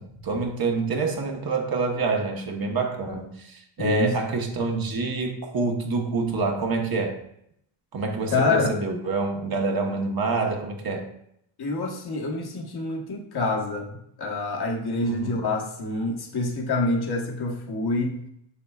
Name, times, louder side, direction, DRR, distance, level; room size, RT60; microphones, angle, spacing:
voice 1, 0.0-7.2 7.9-11.1 15.0-15.4, right 3 dB, 45° right, 2 dB, 1.2 m, -27 dB
voice 2, 3.8-4.2 8.3-8.7 11.6-18.2, left 2 dB, 50° left, 0 dB, 1.3 m, -27 dB
7.0 x 6.6 x 2.4 m, 0.75 s
cardioid pair, 90°, 49 cm